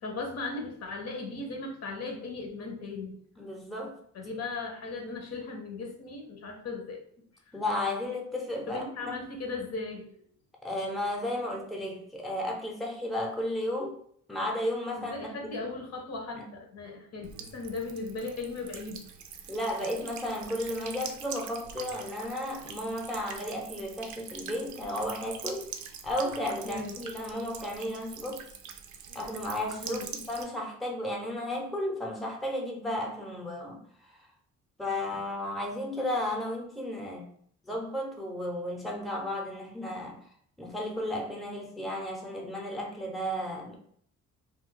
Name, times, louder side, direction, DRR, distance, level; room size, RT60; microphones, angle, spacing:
voice 1, 0.0-3.2 4.1-7.0 8.7-10.1 14.9-19.0 26.6-27.0 29.8-30.1, left 3 dB, 55° left, 2 dB, 0.8 m, -37 dB
voice 2, 3.4-4.0 7.5-9.2 10.6-13.9 14.3-15.7 16.4-16.5 19.5-25.7 26.0-28.5 29.1-30.0 30.3-33.8 34.8-37.3 37.6-40.2 40.6-43.8, left 1 dB, ahead, 1 dB, 0.7 m, -33 dB
Buzz / Water tap faucet / Trickle dribble, 17.2-30.4, right 7 dB, 70° right, 0.5 m, -44 dB
2.4 x 2.2 x 3.7 m, 0.63 s
cardioid pair, 90°, 30 cm